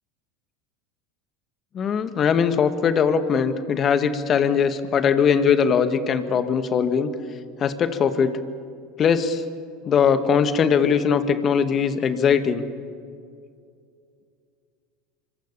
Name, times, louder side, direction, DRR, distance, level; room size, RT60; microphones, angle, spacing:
voice 1, 1.7-7.1 7.6-8.4 9.0-9.4 9.9-12.7, left 7 dB, 40° left, 9 dB, 2.0 m, -20 dB
25.5 x 25.0 x 7.0 m, 2.4 s
hypercardioid pair, 85°, 0 cm